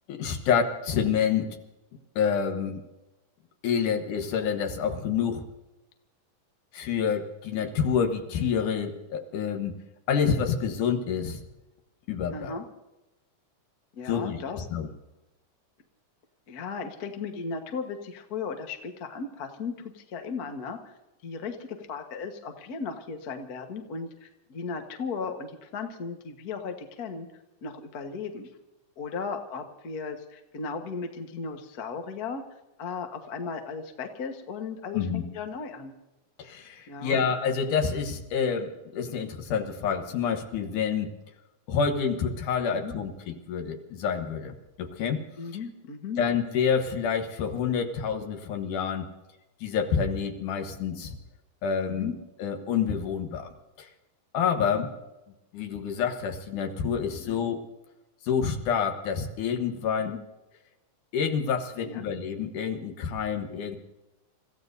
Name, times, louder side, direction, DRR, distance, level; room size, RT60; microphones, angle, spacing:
voice 1, 0.1-1.5 2.2-2.8 3.6-5.5 6.7-9.8 10.1-11.4 12.1-12.6 14.1-14.9 34.9-35.2 36.4-41.1 41.7-45.2 46.2-49.1 49.6-51.2 51.6-53.5 53.8-53.9 54.3-54.9 55.5-57.6 58.2-60.1 61.1-63.8, left 6 dB, 75° left, 5 dB, 2.7 m, -28 dB
voice 2, 12.3-12.6 14.0-14.6 16.5-20.9 21.2-21.6 21.9-27.3 27.6-28.5 29.0-32.4 32.8-35.9 36.9-37.2 42.8-42.9 45.4-46.2 51.9-52.1 54.6-54.8 57.2-57.4 60.0-60.2 61.8-62.0, left 5 dB, 55° left, 5 dB, 1.0 m, -36 dB
29.0 x 15.0 x 2.7 m, 1.0 s
omnidirectional pair, 3.7 m